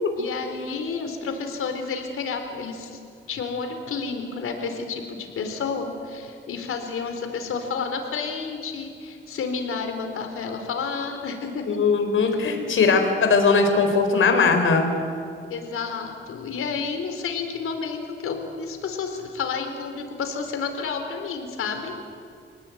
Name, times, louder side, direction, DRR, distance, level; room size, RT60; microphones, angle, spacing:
voice 1, 0.2-3.0 3.3-11.8 12.2-12.4 15.5-21.9, left 5 dB, 85° left, 5 dB, 4.0 m, -30 dB
voice 2, 11.7-14.9, left 4 dB, 70° left, 5 dB, 4.3 m, -19 dB
28.0 x 19.0 x 9.4 m, 2.3 s
cardioid pair, 95°, 21 cm